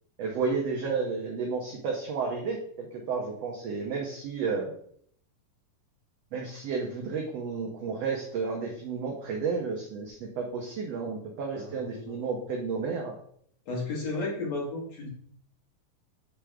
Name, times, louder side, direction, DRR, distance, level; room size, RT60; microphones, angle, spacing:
voice 1, 0.2-4.7 6.3-13.1, right 5 dB, 85° right, 0 dB, 1.4 m, -32 dB
voice 2, 11.5-12.3 13.7-15.1, left 3 dB, 50° left, -3 dB, 2.7 m, -34 dB
7.6 x 3.4 x 4.9 m, 0.63 s
omnidirectional pair, 4.2 m